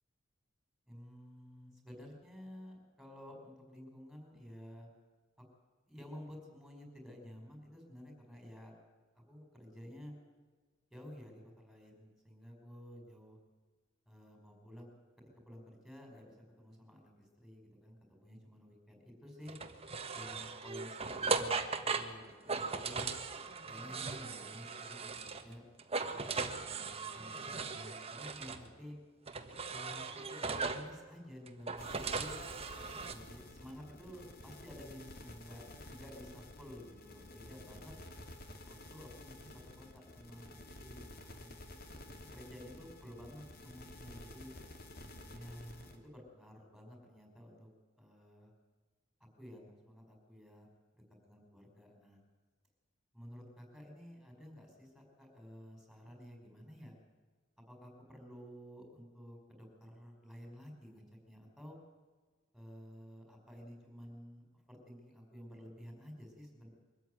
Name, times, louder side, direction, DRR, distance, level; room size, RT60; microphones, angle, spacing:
voice 1, 0.9-4.9 5.9-8.7 9.1-10.1 10.9-13.4 14.1-14.9 15.4-19.6 20.1-23.1 23.6-25.6 26.2-29.0 29.7-32.4 33.1-38.0 38.6-41.5 42.1-44.6 45.3-47.7 48.0-48.5 49.4-50.7 51.2-52.2 53.1-57.0 57.6-61.8 62.5-66.7, equal, ahead, 2 dB, 5.1 m, -52 dB
sound 1, 19.5-25.5 25.8-28.6 29.3-30.9 31.5-33.1, right 4 dB, 30° right, 1.4 m, -38 dB
sound 2, 31.8-46.0, left 1 dB, 50° left, 2.7 m, -52 dB
23.5 x 14.0 x 9.4 m, 1.4 s
head